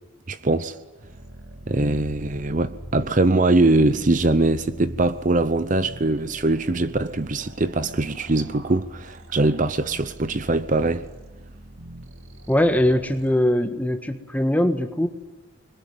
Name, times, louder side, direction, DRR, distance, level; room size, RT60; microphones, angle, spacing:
voice 1, 0.3-0.8 1.7-11.1, right 2 dB, 40° right, 0.8 m, -22 dB
sound 1, 1.0-13.5, right 1 dB, 90° right, 3.0 m, -42 dB
voice 2, 12.5-15.1, left 1 dB, 10° left, 1.5 m, -21 dB
25.5 x 22.0 x 9.2 m
head